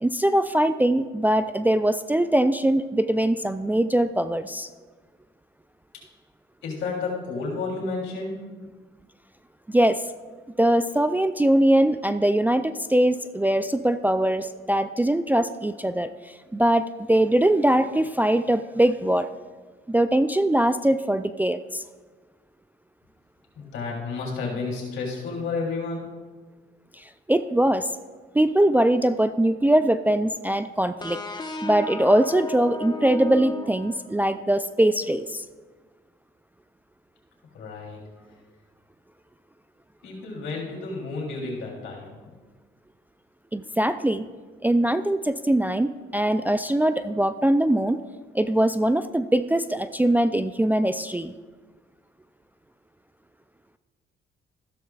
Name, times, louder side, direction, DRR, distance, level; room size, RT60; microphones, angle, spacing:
voice 1, 0.0-4.7 9.7-10.0 10.6-19.3 19.9-21.8 27.0-27.9 28.3-31.2 31.6-35.4 43.5-44.2 44.6-48.0 48.3-51.3, right 1 dB, 10° right, 10 dB, 0.3 m, -22 dB
voice 2, 6.6-8.4 23.5-26.1 37.5-38.0 40.0-42.2, left 4 dB, 75° left, -2 dB, 3.2 m, -31 dB
sound 1, 31.0-34.5, left 2 dB, 20° left, 1.1 m, -34 dB
14.0 x 12.5 x 2.4 m, 1.4 s
cardioid pair, 90°, 20 cm